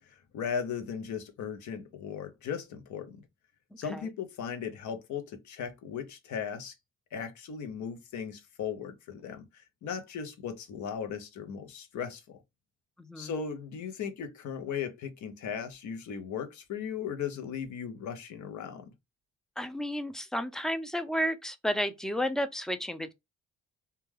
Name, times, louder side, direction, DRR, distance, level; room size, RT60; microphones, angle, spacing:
voice 1, 0.1-3.2 3.8-6.7 7.1-9.5 9.8-12.4 13.2-18.9, left 7 dB, 80° left, 0.7 m, -37 dB
voice 2, 13.0-13.3 19.6-23.1, equal, ahead, 0.3 m, -32 dB
2.3 x 2.2 x 3.1 m
cardioid pair, 90°, 29 cm